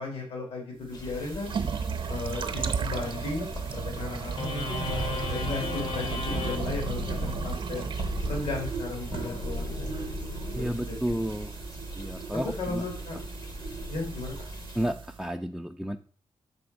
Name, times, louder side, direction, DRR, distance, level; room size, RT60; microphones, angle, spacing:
voice 1, 0.0-1.6 2.1-7.8 8.3-9.9 10.5-11.2 12.3-13.2 13.9-14.3, left 3 dB, 80° left, 1 dB, 2.0 m, -35 dB
sound 1, 0.9-14.8, left 2 dB, 40° left, 0.7 m, -44 dB
sound 2, 0.9-15.2, right 6 dB, 55° right, 0.7 m, -35 dB
sound 3, 4.4-11.1, left 2 dB, 60° left, 1.0 m, -35 dB
voice 2, 10.5-11.5 11.9-12.8 14.7-16.0, equal, 5° right, 5 dB, 0.3 m, -32 dB
6.9 x 4.1 x 5.1 m, 0.43 s
wide cardioid pair, 130°, 10 cm